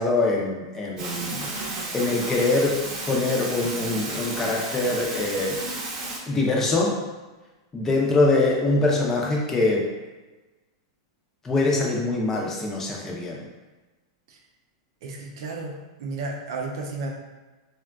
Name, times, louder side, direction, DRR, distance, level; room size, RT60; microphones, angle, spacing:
voice 1, 0.0-1.4 1.9-2.8 3.0-5.6 6.3-7.0 7.7-9.9 11.4-13.4, left 2 dB, 20° left, -2 dB, 0.7 m, -23 dB
sound 1, 1.0-6.2, right 2 dB, 35° right, 0.8 m, -32 dB
voice 2, 15.0-17.1, right 3 dB, 70° right, 0 dB, 0.6 m, -33 dB
3.5 x 2.4 x 2.3 m, 1.2 s
hypercardioid pair, 115°, 2 cm